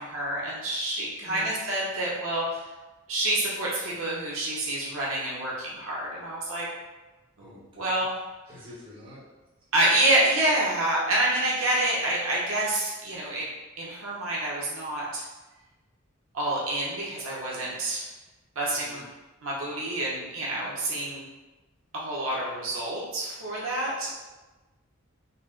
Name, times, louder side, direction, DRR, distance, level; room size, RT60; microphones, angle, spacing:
voice 1, 0.0-2.6 3.1-6.7 7.4-8.1 9.7-13.5 13.8-15.2 16.3-18.0 18.5-19.0 19.4-21.2 21.9-24.2, right 1 dB, 80° right, -5 dB, 1.0 m, -28 dB
voice 2, 7.4-8.0 8.5-9.2 18.7-19.0, left 1 dB, 25° right, -8 dB, 1.1 m, -47 dB
4.2 x 2.1 x 3.8 m, 1.1 s
head